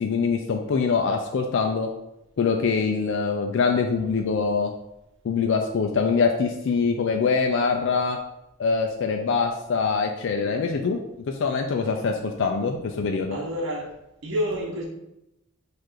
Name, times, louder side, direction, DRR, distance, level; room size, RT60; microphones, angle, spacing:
voice 1, 0.0-1.9 2.4-4.7 5.2-8.2 8.6-11.0 11.3-13.4, left 5 dB, 55° left, 3 dB, 0.3 m, -24 dB
voice 2, 13.3-13.9 14.2-14.8, equal, 55° right, -2 dB, 1.1 m, -28 dB
4.6 x 2.5 x 4.5 m, 0.89 s
head